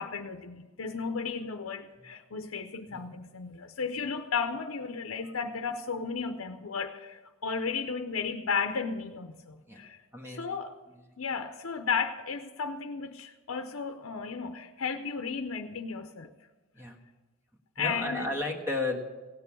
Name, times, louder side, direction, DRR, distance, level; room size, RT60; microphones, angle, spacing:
voice 1, 0.0-10.0 10.3-10.8 11.2-16.3 17.8-18.3, left 5 dB, 85° left, 0.7 m, -34 dB
voice 2, 10.1-10.6 16.7-17.0 17.8-19.0, left 2 dB, 10° right, 1.4 m, -34 dB
17.0 x 6.8 x 8.3 m
head